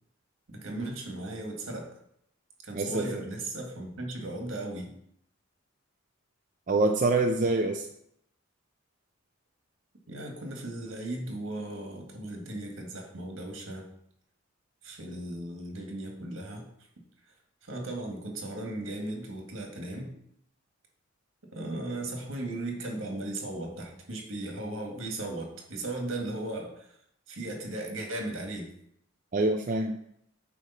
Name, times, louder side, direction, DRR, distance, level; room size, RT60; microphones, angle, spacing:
voice 1, 0.5-1.9 2.6-4.9 10.1-13.9 14.8-16.7 17.6-20.2 21.5-27.0 27.3-28.7, right 2 dB, 75° right, 2 dB, 1.7 m, -36 dB
voice 2, 2.7-3.1 6.7-7.9 29.3-29.9, right 2 dB, 40° right, 3 dB, 0.4 m, -25 dB
8.5 x 3.2 x 5.5 m, 0.72 s
head